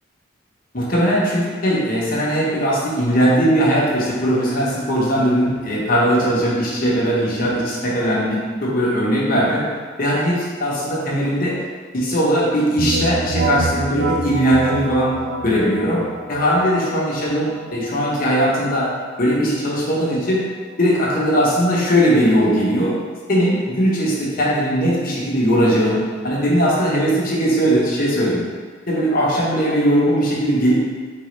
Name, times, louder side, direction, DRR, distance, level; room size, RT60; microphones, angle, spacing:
voice 1, 0.7-9.7 10.0-11.6 11.9-15.1 15.4-18.9 19.2-20.4 20.8-23.0 23.3-26.0 26.2-28.4 28.9-30.7, equal, 45° left, -5 dB, 1.0 m, -19 dB
sound 1, 12.8-22.4, right 3 dB, 65° right, 0.5 m, -29 dB
4.1 x 3.9 x 3.2 m, 1.5 s
head